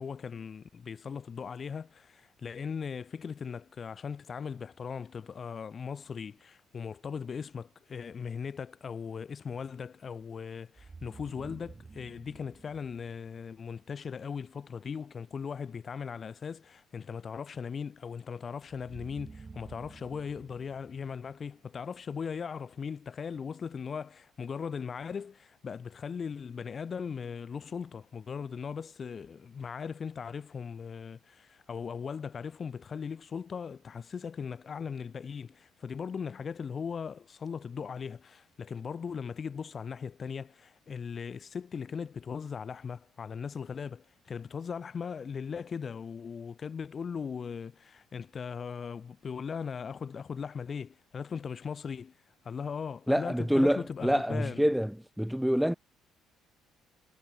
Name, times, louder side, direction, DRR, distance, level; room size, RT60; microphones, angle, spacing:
voice 1, 0.0-52.1 52.4-54.7, left 6 dB, 45° left, 1.1 m, -39 dB
sound 1, 10.7-13.7 18.7-21.9, right 4 dB, 30° right, 2.3 m, -51 dB
voice 2, 53.1-55.8, equal, ahead, 0.4 m, -27 dB
supercardioid pair, 70°, 0 cm